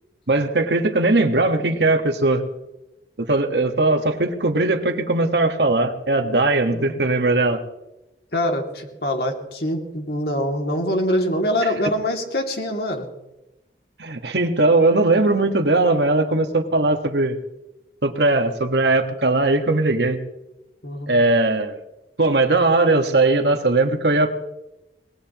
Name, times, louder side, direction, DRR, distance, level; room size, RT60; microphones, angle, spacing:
voice 1, 0.3-2.4 3.2-7.6 11.6-11.7 14.0-17.4 18.0-20.2 21.1-21.8 22.2-24.3, right 2 dB, 75° right, 6 dB, 1.6 m, -19 dB
voice 2, 8.3-13.1 20.8-21.1, left 1 dB, 60° left, 2 dB, 2.5 m, -24 dB
23.5 x 20.0 x 3.0 m, 0.95 s
head